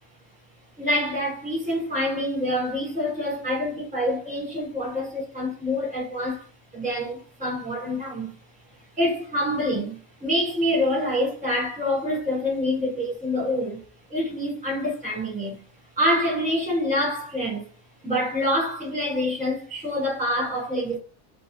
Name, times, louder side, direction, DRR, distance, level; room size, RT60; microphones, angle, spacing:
voice 1, 0.8-6.4 6.7-8.4 9.0-13.8 14.1-15.6 16.0-17.6 18.0-21.0, left 1 dB, 5° right, 1.1 m, -26 dB
2.3 x 2.3 x 3.0 m
omnidirectional pair, 1.5 m